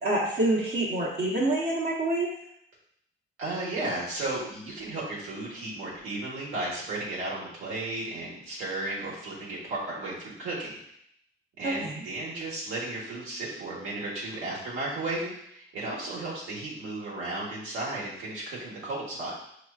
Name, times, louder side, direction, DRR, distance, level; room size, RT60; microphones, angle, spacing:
voice 1, 0.0-2.3 11.6-12.0, right 2 dB, 55° right, -7 dB, 1.1 m, -27 dB
voice 2, 3.4-10.7 11.6-19.3, right 2 dB, 80° right, -6 dB, 1.4 m, -34 dB
5.3 x 3.0 x 2.4 m, 0.73 s
cardioid pair, 90°, 20 cm